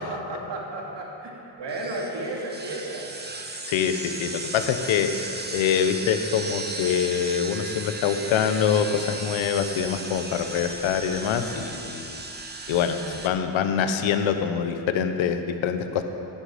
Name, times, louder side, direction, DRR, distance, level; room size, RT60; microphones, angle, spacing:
voice 1, 0.0-3.1, right 2 dB, 60° right, -2 dB, 2.8 m, -33 dB
sound 1, 1.7-13.3, right 2 dB, 20° right, 1.5 m, -36 dB
voice 2, 3.7-5.1 5.5-12.2 12.7-16.0, left 8 dB, 85° left, 8 dB, 1.0 m, -25 dB
14.0 x 11.0 x 5.1 m, 2.8 s
cardioid pair, 65°, 45 cm